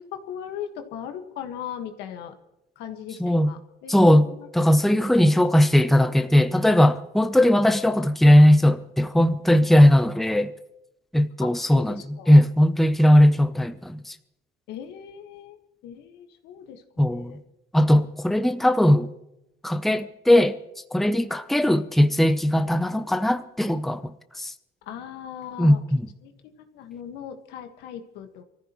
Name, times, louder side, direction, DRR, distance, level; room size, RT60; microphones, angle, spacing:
voice 1, 0.0-2.4 2.7-4.5 9.5-9.7 11.4-12.3 14.7-17.4 24.8-25.8 26.2-28.4, left 9 dB, 85° left, 1.6 m, -39 dB
voice 2, 3.2-3.5 3.9-10.5 11.1-14.1 17.0-17.3 17.7-19.1 19.6-20.6 20.9-24.5 25.6-25.8, left 1 dB, ahead, 0.6 m, -19 dB
24.0 x 14.5 x 3.1 m
cardioid pair, 110°, 17 cm